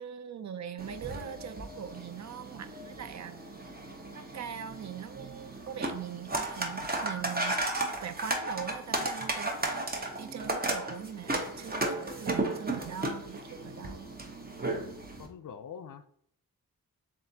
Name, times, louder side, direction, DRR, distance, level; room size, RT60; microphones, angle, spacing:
voice 1, 0.0-3.4 4.1-14.1, right 8 dB, 50° right, 0.4 m, -42 dB
sound 1, 0.8-15.3, right 2 dB, 25° right, 0.9 m, -35 dB
voice 2, 15.2-16.1, left 7 dB, 60° left, 0.5 m, -44 dB
7.3 x 2.5 x 2.7 m
cardioid pair, 65°, 36 cm